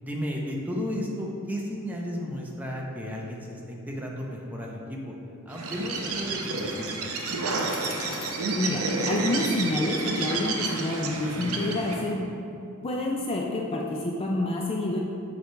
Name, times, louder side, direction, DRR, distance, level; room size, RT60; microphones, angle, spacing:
voice 1, 0.0-5.2 5.5-6.9, equal, 10° right, -2 dB, 0.7 m, -33 dB
Bird, 5.5-12.1, right 3 dB, 80° right, 0.7 m, -30 dB
Bicycle, 6.4-10.2, left 3 dB, 65° left, 0.8 m, -44 dB
voice 2, 8.6-12.3 12.8-15.0, left 2 dB, 25° left, 0 dB, 0.4 m, -28 dB
7.1 x 3.2 x 4.5 m, 2.7 s
head